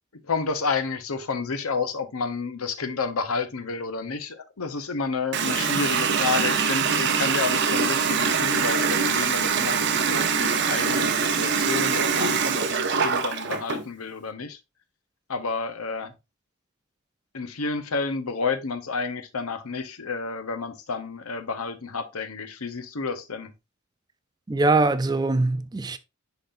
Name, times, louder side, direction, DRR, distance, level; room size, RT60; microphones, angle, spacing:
voice 1, 0.2-14.6 15.3-16.1 17.3-23.5, left 4 dB, 75° left, 0.9 m, -30 dB
Water tap faucet, 5.3-13.8, right 6 dB, 55° right, 0.7 m, -24 dB
voice 2, 24.5-26.0, right 2 dB, 20° right, 0.3 m, -22 dB
10.5 x 3.9 x 2.6 m
head